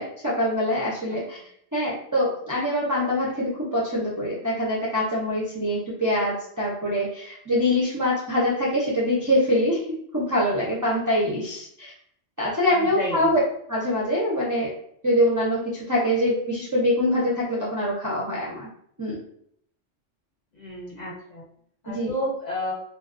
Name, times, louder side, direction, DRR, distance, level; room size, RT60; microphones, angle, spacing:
voice 1, 0.0-1.4 1.7-11.9 12.4-13.4 13.7-14.7 15.0-18.7 19.0-19.2 21.9-22.1, left 1 dB, 30° right, -7 dB, 0.3 m, -24 dB
voice 2, 12.7-13.3 20.5-21.4 21.8-22.7, equal, 45° left, -5 dB, 0.7 m, -31 dB
2.5 x 2.2 x 2.5 m, 0.68 s
omnidirectional pair, 1.2 m